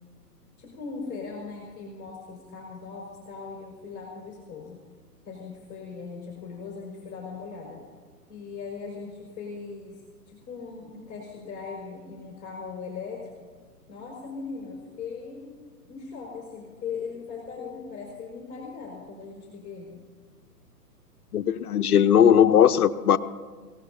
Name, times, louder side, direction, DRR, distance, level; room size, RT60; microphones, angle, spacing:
voice 1, 0.6-4.8 5.2-7.9 8.3-13.5 13.9-15.5 15.8-20.0, left 5 dB, 20° left, -4 dB, 4.7 m, -39 dB
voice 2, 21.3-23.2, left 9 dB, 65° left, 10 dB, 0.9 m, -18 dB
28.0 x 17.5 x 2.7 m, 1.5 s
hypercardioid pair, 125°, 49 cm